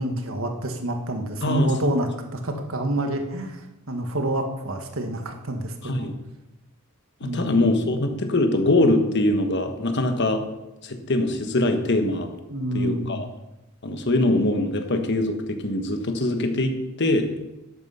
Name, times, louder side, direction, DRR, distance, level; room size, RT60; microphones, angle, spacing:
voice 1, 0.0-6.1 7.2-7.6 7.9-8.1 12.5-13.2, right 1 dB, 70° right, 5 dB, 1.6 m, -28 dB
voice 2, 5.8-6.1 7.2-10.4 10.8-12.3 12.7-13.3 13.8-17.3, left 1 dB, 55° left, 6 dB, 1.4 m, -23 dB
11.5 x 8.5 x 5.6 m, 0.98 s
head